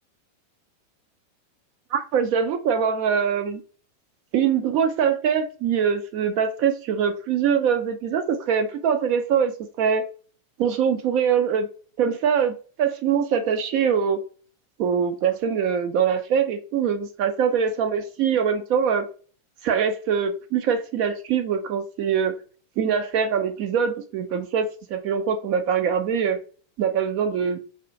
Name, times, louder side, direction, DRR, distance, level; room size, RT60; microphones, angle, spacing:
voice 1, 1.9-3.6 4.3-10.1 10.6-11.7 12.0-14.2 14.8-19.1 19.6-22.4 22.8-26.4 26.8-27.6, right 7 dB, 45° right, 0.3 m, -23 dB
2.4 x 2.2 x 2.6 m
figure-of-eight pair, 90°, 0 cm